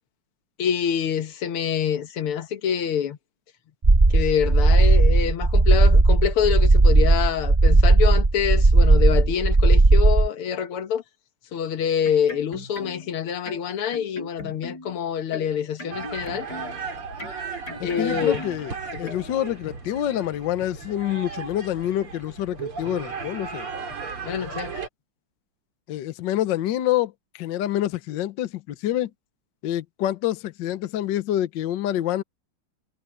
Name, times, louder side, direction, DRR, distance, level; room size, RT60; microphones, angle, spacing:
voice 1, 0.6-3.2 4.1-11.0 11.5-16.5 17.8-18.4 18.9-19.2 24.2-24.8, left 8 dB, 85° left, 2.1 m, -26 dB
sound 1, 3.8-10.3, right 2 dB, 25° right, 0.8 m, -16 dB
sound 2, 12.1-13.1 13.5-15.0 15.3-16.9 17.2-18.7 19.1-19.3, left 1 dB, 50° left, 8.6 m, -39 dB
sound 3, 15.9-24.9, right 5 dB, 80° right, 4.4 m, -35 dB
voice 2, 17.8-18.7 19.0-23.7 25.9-29.1 29.6-32.2, left 12 dB, 65° left, 1.4 m, -27 dB
omnidirectional pair, 2.3 m